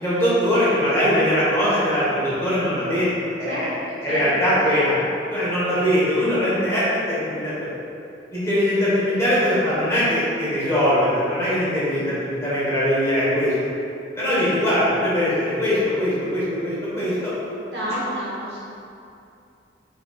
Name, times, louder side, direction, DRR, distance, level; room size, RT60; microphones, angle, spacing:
voice 1, 0.0-3.7 4.0-4.9 5.3-7.5 8.3-13.5 14.2-17.3, equal, 15° left, -10 dB, 1.3 m, -21 dB
voice 2, 3.5-4.8 17.7-18.7, equal, 65° right, -7 dB, 1.2 m, -31 dB
6.4 x 3.3 x 2.4 m, 2.6 s
head